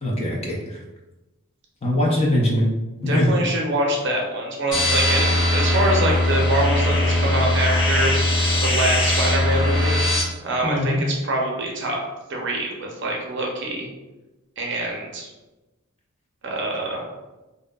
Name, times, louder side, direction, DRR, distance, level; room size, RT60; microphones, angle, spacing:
voice 1, 0.0-0.8 1.8-2.7 3.0-3.3 10.6-11.0, left 1 dB, 30° left, -2 dB, 0.4 m, -21 dB
voice 2, 3.1-8.3 8.6-10.0 10.4-10.9 11.2-12.0 12.3-13.9 14.6-15.3 16.4-17.1, right 1 dB, 55° right, -1 dB, 0.5 m, -25 dB
sound 1, 4.7-10.2, left 1 dB, 55° left, 1.0 m, -20 dB
2.6 x 2.1 x 2.2 m, 1.1 s
head